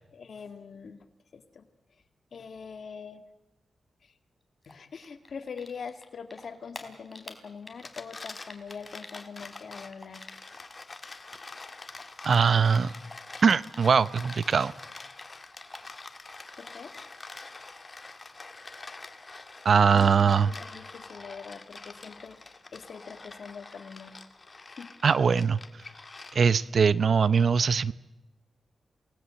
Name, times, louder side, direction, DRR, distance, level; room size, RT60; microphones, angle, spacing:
voice 1, 0.1-1.0 1.3-1.6 2.3-3.2 4.0-4.1 4.7-10.2 16.6-17.0 19.9-24.2 24.7-24.9, left 5 dB, 65° left, 8 dB, 2.0 m, -43 dB
Typing, 4.6-6.1 6.3-10.8 11.0-14.6 14.9-16.2, left 2 dB, 15° left, 4.2 m, -48 dB
sound 1, 7.7-26.7, left 3 dB, 35° left, 2.1 m, -46 dB
voice 2, 12.2-12.9 13.4-14.7 19.6-20.5 25.0-25.6 26.3-27.9, right 6 dB, 60° right, 17 dB, 0.8 m, -21 dB
28.0 x 19.0 x 7.6 m, 0.96 s
cardioid pair, 70°, 0 cm